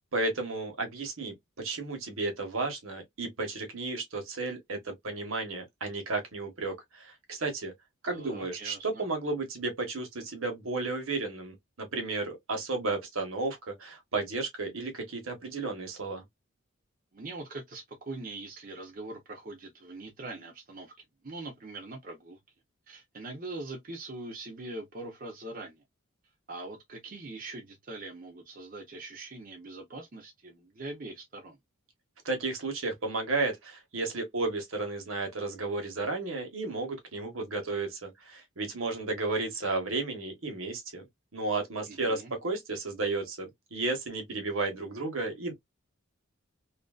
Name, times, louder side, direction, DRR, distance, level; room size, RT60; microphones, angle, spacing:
voice 1, 0.1-7.7 8.0-16.2 32.2-41.0 41.3-45.5, right 3 dB, 75° right, 1.1 m, -33 dB
voice 2, 8.1-9.0 17.1-20.9 21.2-22.4 22.9-25.8 26.5-31.6 41.9-42.3, right 2 dB, 40° right, 0.7 m, -42 dB
2.7 x 2.5 x 2.3 m
head